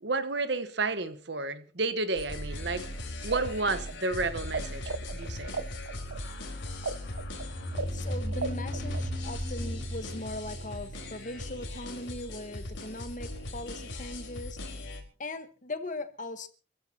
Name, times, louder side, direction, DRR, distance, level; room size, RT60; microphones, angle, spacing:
voice 1, 0.0-2.9 3.2-5.6, right 3 dB, 60° right, 1.2 m, -31 dB
sound 1, 2.2-15.0, left 1 dB, 75° left, 4.2 m, -39 dB
sound 2, 3.2-4.6 4.9-9.3, right 4 dB, 85° right, 0.8 m, -35 dB
sound 3, 7.1-11.7, equal, 35° right, 2.2 m, -37 dB
voice 2, 7.9-16.5, left 2 dB, 40° left, 1.3 m, -40 dB
28.0 x 15.0 x 2.9 m
head